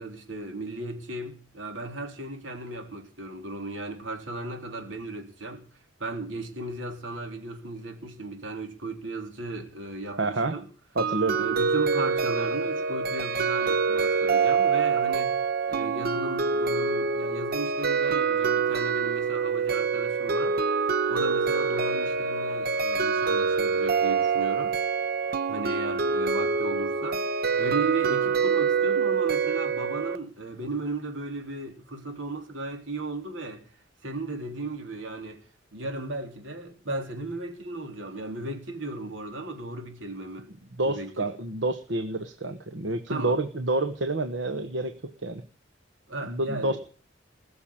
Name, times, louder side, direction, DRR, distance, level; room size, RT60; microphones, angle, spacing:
voice 1, 0.0-5.7 6.0-10.7 11.4-15.4 15.7-20.6 21.1-24.8 25.5-33.6 34.0-35.4 35.7-40.5 40.8-41.3 43.1-43.4 46.1-46.8, right 2 dB, 85° right, 3.7 m, -35 dB
voice 2, 10.2-10.5 10.9-11.4 40.8-44.9 45.2-45.4 46.2-46.8, right 2 dB, 70° right, 1.1 m, -28 dB
sound 1, 11.0-30.2, right 5 dB, 50° right, 0.8 m, -26 dB
20.5 x 7.0 x 8.9 m
head